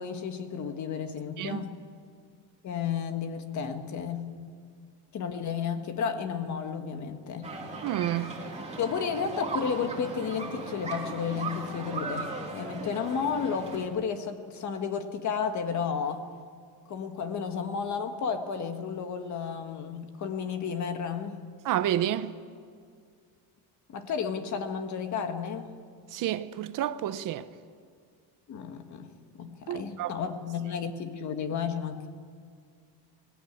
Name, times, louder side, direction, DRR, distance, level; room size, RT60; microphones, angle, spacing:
voice 1, 0.0-1.8 2.6-4.3 5.1-7.5 8.8-16.3 16.9-21.4 23.9-25.7 28.5-29.1 29.3-32.1, left 6 dB, 45° left, 1.7 m, -32 dB
sound 1, 7.4-13.9, right 3 dB, 15° right, 3.0 m, -37 dB
voice 2, 7.8-8.3 21.6-22.3 26.1-27.5 29.7-30.2, right 12 dB, 50° right, 0.8 m, -29 dB
20.5 x 19.5 x 8.9 m
cardioid pair, 165°, 40 cm